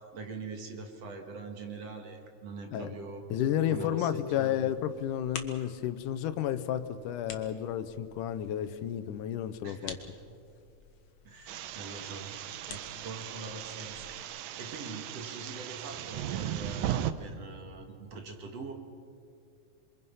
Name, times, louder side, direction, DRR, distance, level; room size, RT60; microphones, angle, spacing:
voice 1, 0.0-3.2 3.7-4.7 9.6-10.0 11.2-12.4 12.7-14.1 14.6-18.7, right 4 dB, 55° right, 3 dB, 2.8 m, -43 dB
voice 2, 3.3-10.0, left 10 dB, 80° left, 12 dB, 2.4 m, -32 dB
Harp, 3.4-9.5, left 8 dB, 35° left, 1.1 m, -45 dB
sound 1, 4.0-14.2, left 7 dB, 65° left, 2.6 m, -50 dB
sound 2, 11.5-17.1, right 11 dB, 70° right, 1.8 m, -37 dB
27.5 x 23.5 x 5.6 m, 2.3 s
omnidirectional pair, 3.7 m